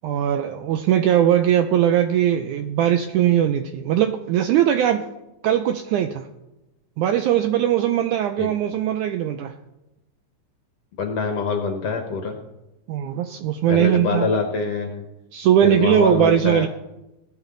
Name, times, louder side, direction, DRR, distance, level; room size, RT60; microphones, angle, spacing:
voice 1, 0.0-5.1 5.4-6.3 7.0-9.6 12.9-14.3 15.3-16.7, right 10 dB, 80° right, 8 dB, 1.8 m, -20 dB
voice 2, 11.0-12.3 13.7-15.0 15.6-16.7, left 4 dB, 60° left, 4 dB, 1.8 m, -24 dB
20.0 x 9.4 x 3.9 m, 0.96 s
omnidirectional pair, 4.1 m